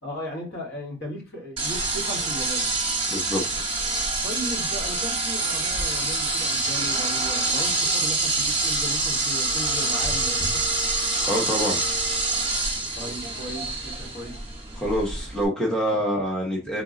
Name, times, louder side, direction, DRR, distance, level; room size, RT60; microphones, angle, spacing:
voice 1, 0.0-2.7 4.2-10.8 12.9-14.4 15.9-16.0, equal, 50° left, 1.3 m, -36 dB
sound 1, 1.6-15.5, right 3 dB, 25° right, 0.9 m, -26 dB
voice 2, 3.1-3.7 11.3-11.9 14.7-16.8, equal, 5° left, 0.8 m, -26 dB
3.8 x 2.3 x 3.6 m
head